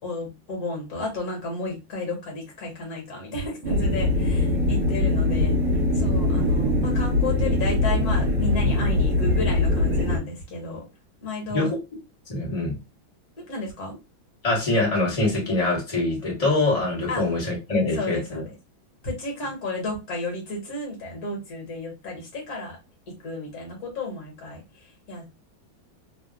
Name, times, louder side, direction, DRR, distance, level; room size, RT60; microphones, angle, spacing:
voice 1, 0.0-5.6 5.9-10.8 11.2-11.7 13.4-14.0 17.1-17.2 17.9-18.4 19.0-22.8 23.2-25.3, left 2 dB, 50° left, 0 dB, 1.7 m, -32 dB
sound 1, 3.6-10.2, left 2 dB, 55° right, 1.5 m, -22 dB
voice 2, 12.3-12.8 14.4-18.4, left 2 dB, 20° left, -4 dB, 1.1 m, -24 dB
3.5 x 2.4 x 2.4 m, 0.25 s
omnidirectional pair, 2.2 m